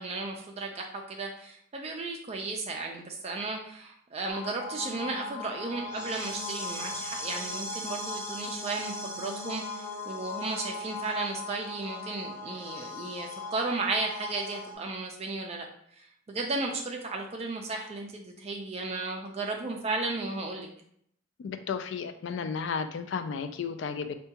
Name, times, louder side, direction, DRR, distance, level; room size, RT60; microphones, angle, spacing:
voice 1, 0.0-15.7 15.9-20.7, right 3 dB, 30° right, 2 dB, 0.3 m, -34 dB
sound 1, 4.3-14.7, left 2 dB, 15° left, 0.6 m, -38 dB
voice 2, 21.4-24.1, left 6 dB, 65° left, 9 dB, 0.3 m, -33 dB
4.6 x 2.2 x 2.8 m, 0.68 s
head